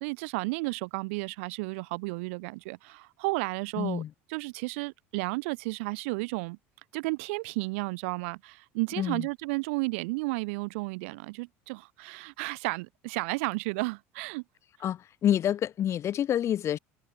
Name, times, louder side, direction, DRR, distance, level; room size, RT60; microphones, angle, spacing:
voice 1, 0.0-4.0 4.3-6.6 6.9-14.4, right 27 dB, 75° right, 0.4 m, -33 dB
voice 2, 3.8-4.1 9.0-9.3 14.8-16.8, left 10 dB, 40° left, 0.5 m, -28 dB
hypercardioid pair, 80°, 7 cm